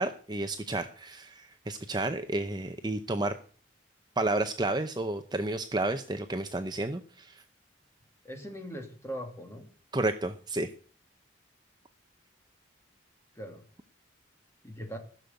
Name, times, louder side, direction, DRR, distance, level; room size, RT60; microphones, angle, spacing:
voice 1, 0.0-3.3 4.2-7.4 9.9-10.7, right 2 dB, 20° right, 7 dB, 0.7 m, -31 dB
voice 2, 8.2-9.7 13.3-13.6 14.6-15.0, equal, 15° left, 3 dB, 2.6 m, -40 dB
15.5 x 6.9 x 8.0 m, 0.42 s
head